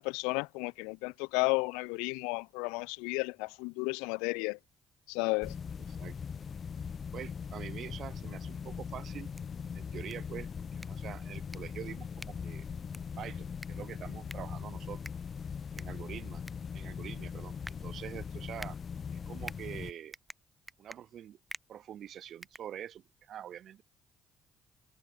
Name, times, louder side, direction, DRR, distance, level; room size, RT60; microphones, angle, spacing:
voice 1, 0.0-4.6 5.1-5.5, left 31 dB, 80° left, 0.7 m, -33 dB
sound 1, 5.4-19.9, left 6 dB, 45° left, 1.0 m, -40 dB
voice 2, 7.1-9.3 9.7-12.6 13.2-15.0 15.7-16.4 16.7-17.6 17.8-18.8 19.1-20.1 20.8-21.4 21.7-23.8, right 10 dB, 60° right, 6.9 m, -45 dB
sound 2, 10.7-23.3, right 1 dB, 10° right, 6.5 m, -52 dB
open air
hypercardioid pair, 45°, 0 cm